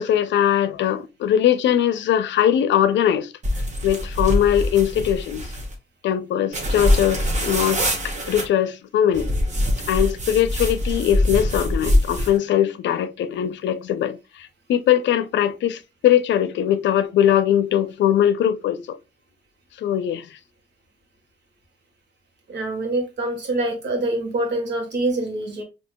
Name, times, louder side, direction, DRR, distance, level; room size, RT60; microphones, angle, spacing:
voice 1, 0.0-3.3 3.8-5.4 6.0-9.3 9.9-19.0 19.8-20.3, left 10 dB, 90° left, 0.5 m, -21 dB
sound 1, 3.4-5.7 6.5-8.5 9.1-12.4, left 1 dB, 40° right, 1.0 m, -23 dB
voice 2, 22.5-25.6, right 2 dB, 75° right, 1.4 m, -25 dB
4.4 x 2.8 x 2.2 m
cardioid pair, 95°, 18 cm